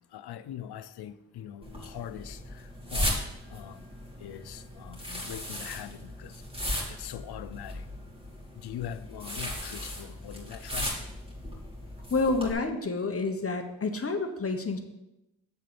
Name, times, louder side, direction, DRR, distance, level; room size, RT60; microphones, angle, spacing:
voice 1, 0.1-3.2 3.5-3.8 4.2-6.4 6.9-7.9 8.6-10.9, left 10 dB, 90° left, 0.5 m, -42 dB
sound 1, 1.6-12.5, left 1 dB, 15° right, 2.4 m, -37 dB
voice 2, 12.1-14.8, left 3 dB, 35° left, 1.0 m, -29 dB
8.3 x 3.8 x 6.7 m
cardioid pair, 85°, 38 cm